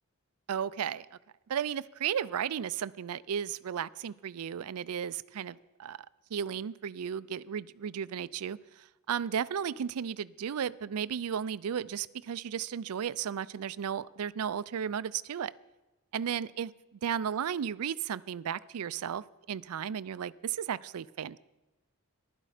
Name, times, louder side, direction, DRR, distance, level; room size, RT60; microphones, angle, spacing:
voice 1, 0.5-1.1 1.5-6.0 6.3-8.6 9.1-15.5 16.1-21.4, right 8 dB, 75° right, 18 dB, 0.4 m, -34 dB
15.0 x 12.0 x 5.0 m, 1.1 s
head